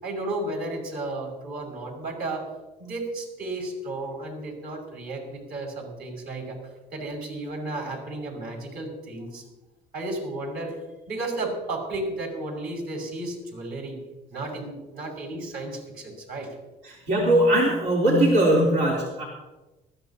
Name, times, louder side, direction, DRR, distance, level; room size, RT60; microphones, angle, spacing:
voice 1, 0.0-2.5 2.8-6.6 6.9-9.4 9.9-10.8 11.1-14.0 14.3-16.5 16.9-17.0, right 2 dB, 65° right, 0 dB, 5.7 m, -33 dB
voice 2, 16.8-19.2, right 1 dB, 85° right, -4 dB, 3.4 m, -20 dB
20.0 x 14.0 x 2.9 m, 1.1 s
cardioid pair, 110°, 17 cm